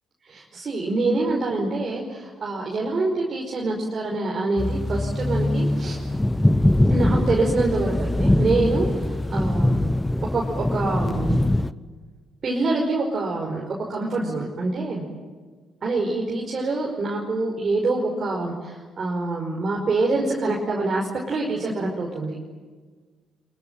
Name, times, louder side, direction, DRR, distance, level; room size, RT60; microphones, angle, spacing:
voice 1, 0.2-6.0 6.9-9.8 10.3-11.4 12.4-15.1 15.8-22.4, right 2 dB, 40° right, -2 dB, 5.2 m, -25 dB
sound 1, 4.6-11.7, left 1 dB, 10° left, 1.0 m, -22 dB
27.5 x 23.0 x 9.1 m, 1.4 s
figure-of-eight pair, 45°, 0 cm